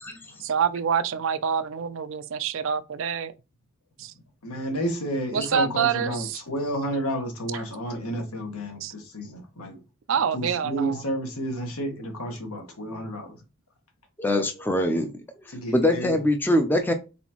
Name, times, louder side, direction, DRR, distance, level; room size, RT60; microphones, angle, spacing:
voice 1, 0.4-3.3 4.0-4.1 5.3-6.4 8.8-8.9 10.1-11.0, right 7 dB, 60° right, 0.4 m, -26 dB
voice 2, 4.4-9.8 10.3-13.4 15.5-16.1 16.4-16.5, right 1 dB, 85° left, 1.4 m, -31 dB
voice 3, 14.2-15.1 15.5-16.9, left 1 dB, 10° left, 0.4 m, -23 dB
4.1 x 3.9 x 2.9 m
head